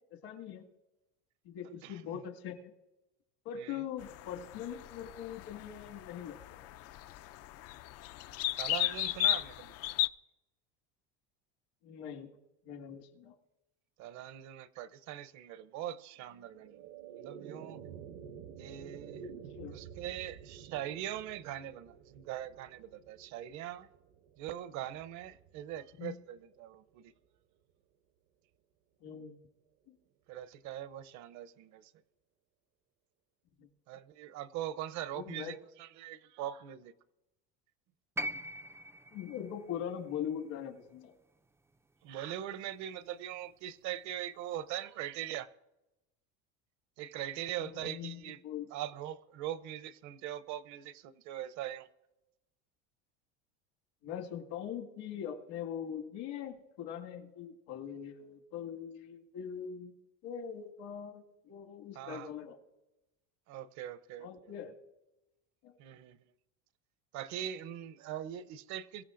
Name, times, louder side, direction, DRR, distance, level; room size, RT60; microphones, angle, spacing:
voice 1, 0.1-0.7 1.4-2.7 3.5-6.6 11.8-12.3 12.6-13.3 19.6-19.8 26.0-26.2 29.0-29.4 29.9-30.0 35.1-35.5 39.1-41.1 47.6-48.7 54.0-60.0 60.2-62.6 64.2-64.8 65.6-65.8, left 8 dB, 70° left, 2.0 m, -42 dB
voice 2, 1.8-2.2 3.6-3.8 8.6-9.7 14.0-16.8 17.2-17.8 18.6-19.3 19.7-23.9 24.4-27.1 30.3-31.9 33.9-36.9 42.0-45.5 47.0-48.4 48.7-51.9 61.9-62.3 63.5-64.5 65.8-66.2 67.1-69.0, right 11 dB, 60° right, 0.8 m, -41 dB
sound 1, 4.0-10.1, left 15 dB, 50° left, 0.5 m, -35 dB
sound 2, 16.2-26.7, right 7 dB, 75° right, 1.0 m, -51 dB
sound 3, 38.2-42.3 43.5-43.6, right 1 dB, 10° right, 0.4 m, -43 dB
23.0 x 15.0 x 2.6 m
supercardioid pair, 120°, 33 cm